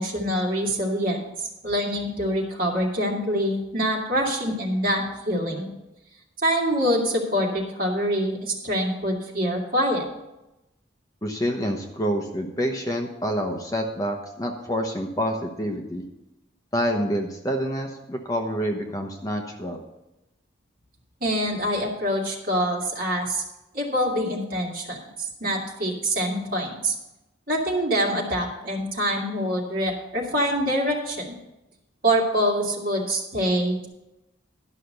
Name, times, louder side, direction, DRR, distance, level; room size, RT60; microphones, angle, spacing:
voice 1, 0.0-5.7 6.4-10.0 21.2-23.4 23.7-26.9 27.5-31.3 32.0-33.9, equal, 45° right, -2 dB, 2.2 m, -25 dB
voice 2, 11.2-16.0 16.7-19.8, equal, 20° left, 3 dB, 0.9 m, -27 dB
11.5 x 5.7 x 6.6 m, 0.94 s
head